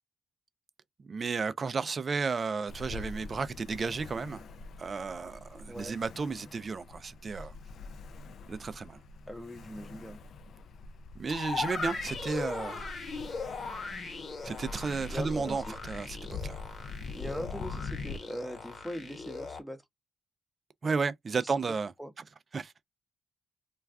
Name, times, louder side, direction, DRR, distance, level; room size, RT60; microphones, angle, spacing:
voice 1, 1.1-4.4 4.8-7.5 8.5-9.0 11.2-12.9 14.4-16.6 20.8-21.9 22.5-22.7, right 4 dB, 40° right, 0.4 m, -33 dB
Ocean, 2.7-18.2, left 3 dB, 70° left, 0.3 m, -44 dB
voice 2, 9.3-10.2 15.1-15.8 17.1-19.8 21.4-21.5 22.0-22.1, equal, ahead, 0.6 m, -41 dB
sound 1, 11.3-19.6, left 4 dB, 55° left, 1.1 m, -39 dB
2.3 x 2.3 x 3.3 m
cardioid pair, 80°, 0 cm